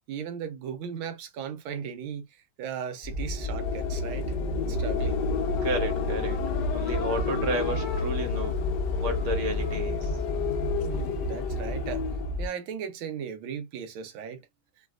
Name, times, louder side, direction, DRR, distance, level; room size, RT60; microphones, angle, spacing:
voice 1, 0.1-2.3 2.6-4.2 4.7-5.2 10.8-12.0 12.4-14.4, right 7 dB, 75° right, 1.4 m, -37 dB
sound 1, 3.0-12.5, equal, 25° right, 1.3 m, -32 dB
sound 2, 3.1-12.5, left 6 dB, 65° left, 1.1 m, -31 dB
voice 2, 5.6-8.6 8.9-10.3, right 1 dB, 45° right, 1.1 m, -32 dB
3.2 x 2.9 x 2.3 m
omnidirectional pair, 2.3 m